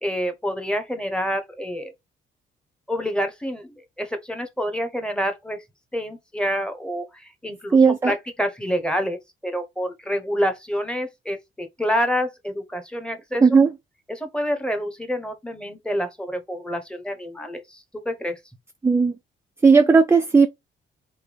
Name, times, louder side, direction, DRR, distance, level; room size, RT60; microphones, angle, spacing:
voice 1, 0.0-1.9 2.9-5.6 5.9-13.6 14.1-18.4, equal, 5° left, 1.0 m, -28 dB
voice 2, 7.7-8.1 13.4-13.7 18.8-19.1 19.6-20.5, right 5 dB, 10° right, 0.4 m, -15 dB
3.5 x 2.7 x 3.5 m
cardioid pair, 90°, 20 cm